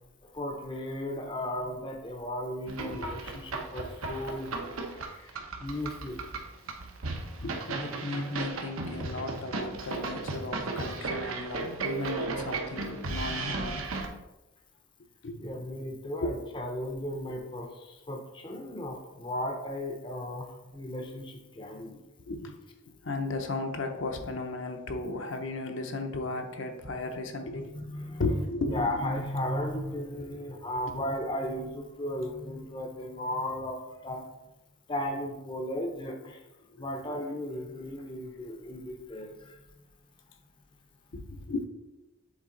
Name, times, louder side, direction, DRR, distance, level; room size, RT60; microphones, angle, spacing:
voice 1, 0.2-4.8 5.6-6.2 15.4-22.0 27.5-34.3 34.9-36.5 36.8-39.6, left 1 dB, 25° left, 3 dB, 0.5 m, -35 dB
sound 1, 2.7-14.1, right 3 dB, 90° right, 0.9 m, -35 dB
voice 2, 7.4-13.8 15.2-15.4 15.8-15.9 16.2-16.3 22.3-22.6 23.0-27.7 28.2-29.2 36.7-36.9 41.1-41.7, left 2 dB, 70° left, 5 dB, 0.7 m, -35 dB
7.2 x 4.1 x 3.8 m, 1.0 s
head